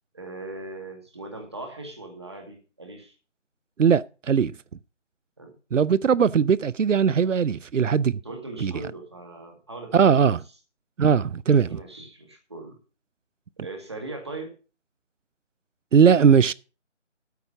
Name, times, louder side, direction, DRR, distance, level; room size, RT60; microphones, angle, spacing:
voice 1, 0.1-3.1 5.4-5.5 8.2-10.3 11.7-12.8 13.6-14.5, right 2 dB, 20° right, 2.0 m, -39 dB
voice 2, 3.8-4.5 5.7-8.2 8.6-8.7 9.9-10.4 11.0-11.8 15.9-16.5, right 7 dB, 90° right, 0.6 m, -19 dB
13.0 x 4.7 x 7.8 m
figure-of-eight pair, 170°, 36 cm